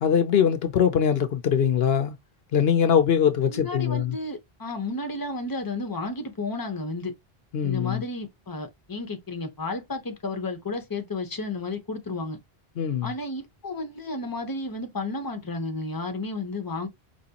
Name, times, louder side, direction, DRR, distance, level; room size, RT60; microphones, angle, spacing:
voice 1, 0.0-2.1 2.5-4.2 7.5-8.0 12.8-13.1, left 8 dB, 70° left, 0.9 m, -22 dB
voice 2, 3.5-7.1 7.6-12.4 13.0-16.9, left 2 dB, 20° left, 0.9 m, -32 dB
5.1 x 3.1 x 2.8 m
omnidirectional pair, 1.1 m